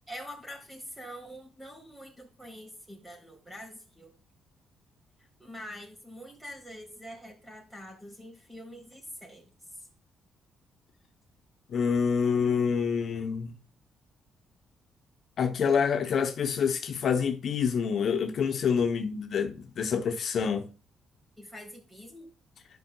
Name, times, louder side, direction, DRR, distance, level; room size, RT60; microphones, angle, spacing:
voice 1, 0.1-4.1 5.4-9.5 21.4-22.3, equal, 10° right, 3.9 m, -45 dB
voice 2, 11.7-13.5 15.4-20.7, left 6 dB, 60° left, 0.9 m, -27 dB
12.0 x 5.4 x 2.4 m
cardioid pair, 90°, 0 cm